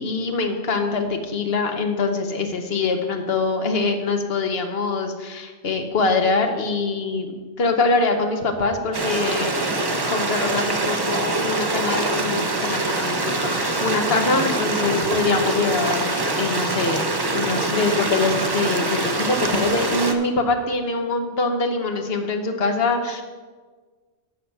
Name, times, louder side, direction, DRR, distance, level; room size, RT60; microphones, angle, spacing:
voice 1, 0.0-9.7 10.1-23.2, left 3 dB, 60° left, 5 dB, 1.2 m, -24 dB
Stream, 8.9-20.1, right 2 dB, 25° right, 0.6 m, -24 dB
8.7 x 5.8 x 6.6 m, 1.4 s
omnidirectional pair, 1.2 m